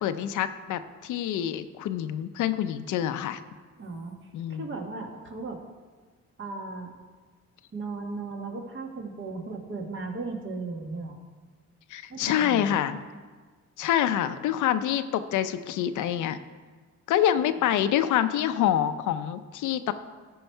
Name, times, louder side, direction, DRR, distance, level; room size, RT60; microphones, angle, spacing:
voice 1, 0.0-3.4 4.3-4.6 11.9-13.0 13.8-16.4 17.1-19.9, left 10 dB, 80° left, 11 dB, 0.5 m, -26 dB
voice 2, 3.8-4.1 4.5-5.6 6.4-6.9 7.7-11.2 12.1-12.7 17.6-17.9, right 3 dB, 40° right, 3 dB, 1.4 m, -36 dB
13.5 x 4.7 x 4.5 m, 1.4 s
cardioid pair, 90°, 30 cm